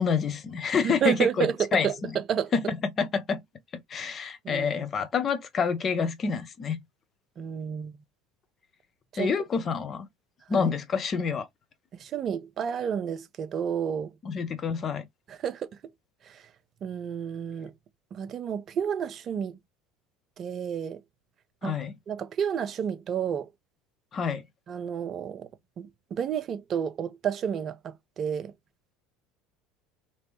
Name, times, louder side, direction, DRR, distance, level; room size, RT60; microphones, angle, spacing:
voice 1, 0.0-1.5 1.7-2.1 2.5-3.4 3.9-6.8 9.2-10.1 10.5-11.5 14.2-15.1 21.6-21.9 24.1-24.4, left 6 dB, 30° left, 0.8 m, -27 dB
voice 2, 0.8-2.5 4.4-4.8 7.4-8.0 9.1-9.3 10.5-10.7 12.0-14.1 15.3-15.7 16.2-16.5 16.8-17.7 18.1-19.5 20.4-21.0 21.6-21.7 22.1-23.5 24.7-25.5 25.8-28.5, right 8 dB, 35° right, 0.5 m, -30 dB
3.0 x 3.0 x 3.0 m
figure-of-eight pair, 65°, 0 cm